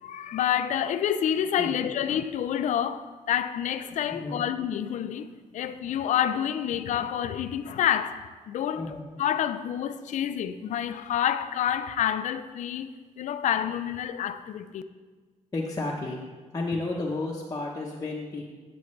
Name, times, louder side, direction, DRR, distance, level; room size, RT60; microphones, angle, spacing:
voice 1, 0.0-8.2 8.5-8.8 9.2-12.9 13.2-14.8, left 9 dB, 70° left, 0.4 m, -28 dB
voice 2, 4.1-4.5 8.7-9.1 15.5-16.2 16.5-18.4, left 2 dB, 30° left, 0.9 m, -32 dB
9.1 x 6.9 x 3.2 m
cardioid pair, 90°, 13 cm